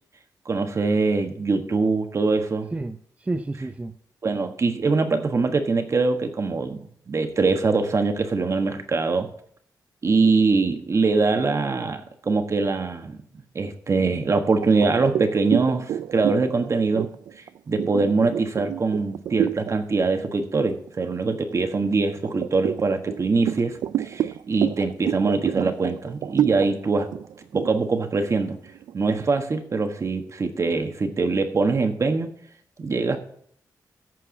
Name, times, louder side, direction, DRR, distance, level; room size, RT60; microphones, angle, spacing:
voice 1, 0.4-2.7 4.2-9.3 10.0-13.2 13.5-17.1 17.7-27.1 27.5-28.6 28.9-32.3 32.8-33.2, right 4 dB, 45° right, 7 dB, 1.4 m, -23 dB
voice 2, 2.7-3.9, right 2 dB, 20° right, 8 dB, 0.5 m, -30 dB
sound 1, 14.6-19.8 20.2-20.5 20.9-21.7 22.2-28.9, right 10 dB, 90° right, 0.3 m, -29 dB
14.0 x 4.7 x 7.1 m, 0.64 s
cardioid pair, 95°, 7 cm